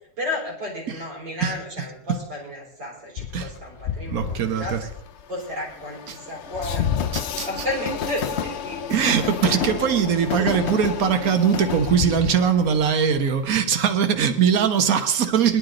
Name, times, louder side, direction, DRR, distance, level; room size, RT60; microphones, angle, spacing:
voice 1, 0.2-4.9 5.3-7.1 7.5-8.8 10.4-10.6 13.1-13.2, left 1 dB, 75° right, -2 dB, 5.1 m, -32 dB
Train, 3.2-13.6, left 8 dB, 70° left, 0.6 m, -30 dB
voice 2, 4.1-4.8 6.1-6.2 7.1-7.5 8.9-15.6, right 7 dB, 55° right, 8 dB, 1.5 m, -21 dB
20.5 x 11.5 x 3.9 m, 0.72 s
omnidirectional pair, 1.9 m